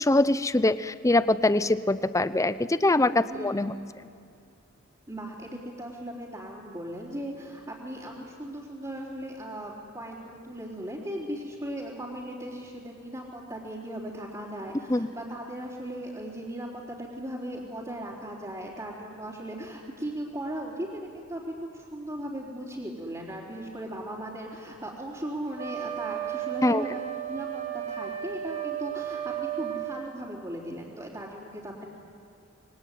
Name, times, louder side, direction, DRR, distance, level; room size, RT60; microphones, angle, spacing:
voice 1, 0.0-3.7 14.9-15.1 26.6-26.8, left 2 dB, 15° left, 14 dB, 0.7 m, -23 dB
voice 2, 3.3-3.8 5.1-27.6 27.9-31.9, right 1 dB, 20° right, -6 dB, 4.0 m, -38 dB
Wind instrument woodwind instrument, 25.6-30.0, right 11 dB, 40° right, 5.1 m, -34 dB
27.0 x 22.5 x 9.5 m, 2.7 s
head